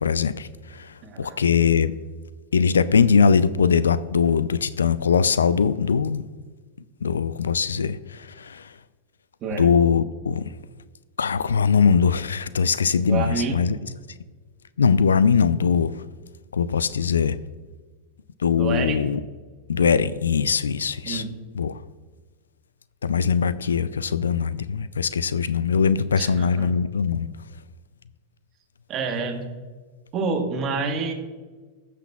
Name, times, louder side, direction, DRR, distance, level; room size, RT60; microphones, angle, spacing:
voice 1, 0.0-1.9 2.5-6.2 7.0-8.7 9.6-10.5 11.2-13.8 14.8-15.9 16.5-17.4 18.4-19.2 19.7-21.2 21.5-21.8 23.0-27.3, left 6 dB, 90° left, 0.3 m, -21 dB
voice 2, 1.0-1.4 9.4-9.7 13.1-13.6 18.6-19.0 21.0-21.3 26.2-26.7 28.9-29.5 30.1-31.1, right 4 dB, 40° right, 1.4 m, -28 dB
15.5 x 6.0 x 2.3 m
hypercardioid pair, 105°, 0 cm